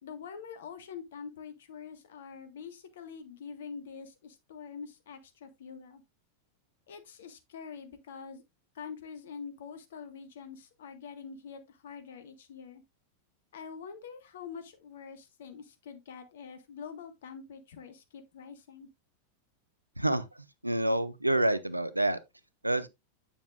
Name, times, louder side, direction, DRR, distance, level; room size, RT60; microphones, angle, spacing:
voice 1, 0.0-6.0 6.9-8.4 8.7-12.8 13.5-18.9, left 6 dB, 60° left, 1.6 m, -45 dB
voice 2, 20.6-22.2 22.6-22.9, right 1 dB, 85° right, 0.7 m, -27 dB
9.1 x 7.0 x 2.5 m
figure-of-eight pair, 90°, 0 cm